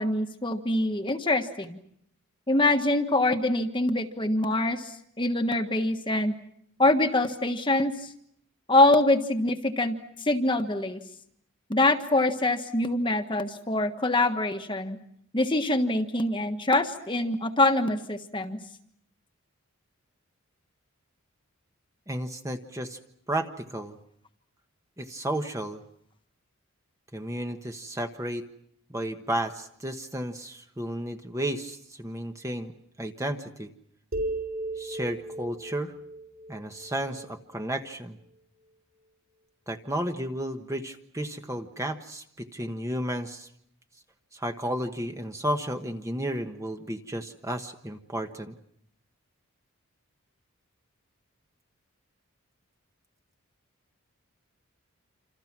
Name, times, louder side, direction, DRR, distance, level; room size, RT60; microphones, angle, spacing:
voice 1, 0.0-1.8 2.5-6.3 6.8-8.1 8.7-11.0 11.7-15.0 15.3-18.6, left 2 dB, 20° left, 7 dB, 1.4 m, -24 dB
voice 2, 22.1-23.0 23.3-24.0 25.0-25.8 27.1-28.5 28.9-32.7 33.0-33.7 34.8-35.9 36.5-38.2 39.7-43.5 44.3-48.5, right 1 dB, 15° right, 5 dB, 1.2 m, -33 dB
sound 1, 34.1-37.6, right 2 dB, 45° right, 4.7 m, -36 dB
28.0 x 27.5 x 6.1 m, 0.71 s
head